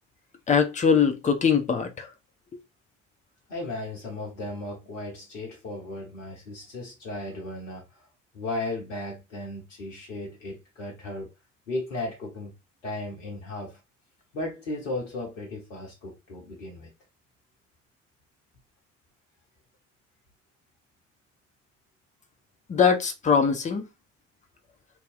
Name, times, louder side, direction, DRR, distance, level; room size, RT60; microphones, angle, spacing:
voice 1, 0.5-2.1 22.7-23.9, left 6 dB, 20° left, 0.7 m, -22 dB
voice 2, 3.5-8.1 8.3-11.3 11.7-12.5 12.8-13.8 14.3-16.9, left 2 dB, 75° left, 0.9 m, -35 dB
2.7 x 2.0 x 3.9 m
figure-of-eight pair, 55°, 38 cm